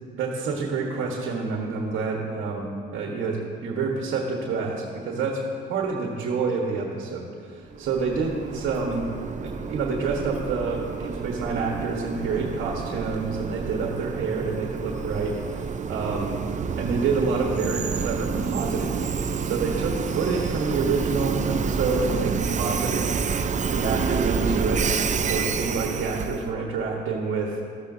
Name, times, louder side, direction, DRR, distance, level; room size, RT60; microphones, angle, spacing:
voice 1, 0.1-2.7 2.9-5.4 5.7-9.1 9.7-16.4 16.8-19.0 19.4-23.2 23.5-24.8 25.2-27.6, right 4 dB, 80° right, 0 dB, 1.4 m, -28 dB
Train, 7.7-26.5, right 5 dB, 40° right, 0.6 m, -28 dB
13.5 x 13.5 x 2.7 m, 2.2 s
cardioid pair, 90°, 20 cm